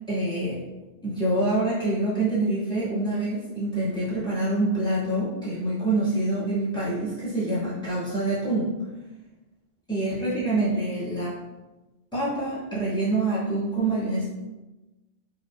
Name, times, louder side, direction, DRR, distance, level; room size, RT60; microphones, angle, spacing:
voice 1, 0.1-0.6 1.0-8.7 9.9-11.3 12.1-14.3, right 2 dB, 5° left, -11 dB, 1.3 m, -26 dB
3.0 x 2.5 x 2.3 m, 1.1 s
omnidirectional pair, 1.1 m